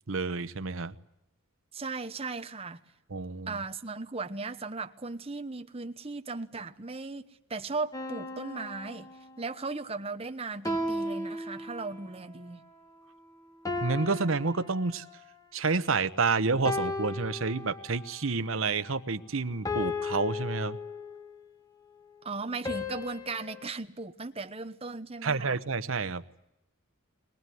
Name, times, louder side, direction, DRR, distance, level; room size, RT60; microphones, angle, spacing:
voice 1, 0.1-0.9 3.1-3.6 13.8-15.0 15.5-20.8 25.2-26.2, right 4 dB, 70° right, 1.0 m, -29 dB
voice 2, 1.7-2.8 3.5-9.1 9.4-12.6 22.2-25.6, right 3 dB, 30° right, 1.1 m, -37 dB
sound 1, 7.9-9.6 10.6-12.2 13.6-15.3 16.6-18.2 19.6-21.4 22.6-23.7, left 2 dB, 15° left, 2.0 m, -35 dB
22.0 x 20.5 x 9.3 m
head